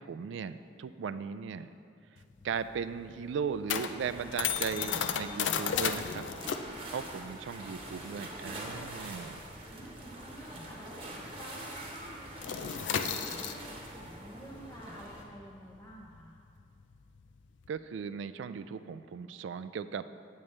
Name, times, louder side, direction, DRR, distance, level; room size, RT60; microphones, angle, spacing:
voice 1, 0.0-1.7 2.4-6.2 6.9-9.4 17.7-20.1, right 6 dB, 80° right, 13 dB, 0.3 m, -37 dB
sound 1, 2.2-11.1 11.4-11.7 11.9-17.7, left 8 dB, 75° left, 0.4 m, -35 dB
sound 2, 4.0-15.2, right 1 dB, 30° right, 1.1 m, -45 dB
voice 2, 6.7-7.1 8.7-9.1 9.5-16.4, equal, 15° left, -5 dB, 0.6 m, -50 dB
8.8 x 8.4 x 3.2 m, 2.4 s
head